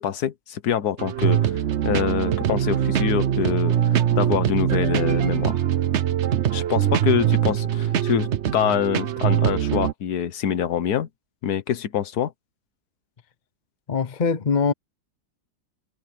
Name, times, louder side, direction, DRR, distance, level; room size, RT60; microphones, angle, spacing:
voice 1, 0.0-1.5 1.8-3.7 4.1-5.6 6.5-11.1 11.4-12.3, left 9 dB, 70° left, 1.6 m, -25 dB
sound 1, 1.0-9.9, right 10 dB, 55° right, 0.9 m, -22 dB
voice 2, 13.9-14.7, left 5 dB, 40° left, 0.7 m, -22 dB
omnidirectional pair, 1.7 m